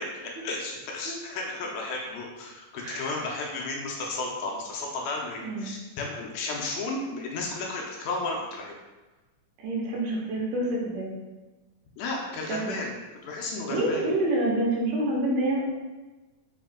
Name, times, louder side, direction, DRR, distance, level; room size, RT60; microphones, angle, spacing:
voice 1, 0.0-8.7 12.0-12.9 13.2-14.0, left 3 dB, 80° left, -1 dB, 1.9 m, -33 dB
voice 2, 2.8-3.2 5.4-5.7 9.6-11.1 12.5-12.8 13.7-15.6, right 1 dB, 80° right, -3 dB, 2.4 m, -27 dB
5.5 x 2.7 x 3.6 m, 1.2 s
omnidirectional pair, 3.8 m